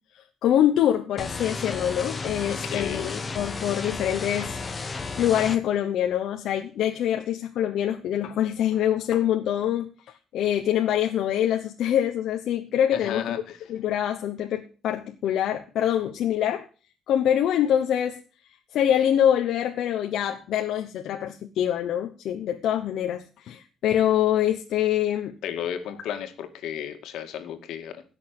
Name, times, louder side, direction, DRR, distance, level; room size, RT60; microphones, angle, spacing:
voice 1, 0.4-3.1 3.3-9.9 10.3-13.3 13.7-16.7 17.1-18.2 18.7-25.4, left 10 dB, 70° left, 5 dB, 1.0 m, -25 dB
sound 1, 1.2-5.6, left 4 dB, 20° left, 1.1 m, -33 dB
voice 2, 2.5-3.2 12.9-13.6 25.4-28.0, left 9 dB, 85° left, 7 dB, 2.0 m, -33 dB
16.5 x 6.5 x 6.7 m, 0.37 s
cardioid pair, 170°, 0 cm